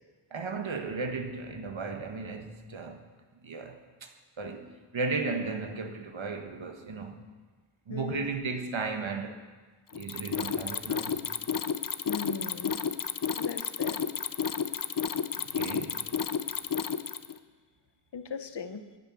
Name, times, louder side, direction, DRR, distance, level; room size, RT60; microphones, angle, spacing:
voice 1, 0.3-3.0 3.4-4.1 4.4-7.3 7.9-9.4 9.9-11.2 15.4-16.1, right 4 dB, 75° right, 5 dB, 1.6 m, -35 dB
voice 2, 7.9-8.3 12.1-12.8 13.4-14.0 18.1-18.8, left 5 dB, 60° left, 9 dB, 1.0 m, -38 dB
Mechanisms, 9.9-17.4, left 7 dB, 45° left, 0.6 m, -31 dB
10.5 x 10.0 x 9.7 m, 1.4 s
wide cardioid pair, 80°, 47 cm